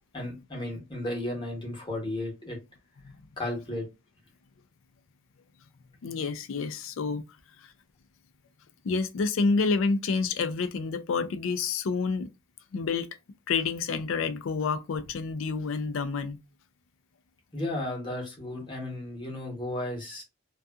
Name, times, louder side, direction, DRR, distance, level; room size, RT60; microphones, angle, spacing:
voice 1, 0.1-2.6 3.4-3.8 17.5-20.2, left 1 dB, 25° left, 0.9 m, -34 dB
voice 2, 6.0-7.2 8.8-12.3 12.7-13.1 13.5-16.4, left 4 dB, 70° left, 0.4 m, -28 dB
2.6 x 2.3 x 2.3 m
head